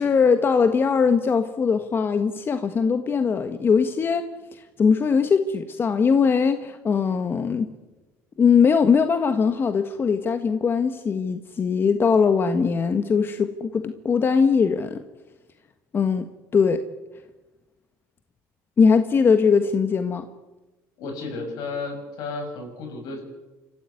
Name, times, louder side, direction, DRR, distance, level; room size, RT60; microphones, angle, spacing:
voice 1, 0.0-4.2 4.5-7.7 8.4-15.0 15.9-16.3 16.5-16.8 18.8-20.3, left 5 dB, 35° left, 9 dB, 1.4 m, -21 dB
voice 2, 21.0-23.2, left 3 dB, 70° left, 5 dB, 7.0 m, -33 dB
27.0 x 15.0 x 9.7 m, 1.1 s
cardioid pair, 105°, 7 cm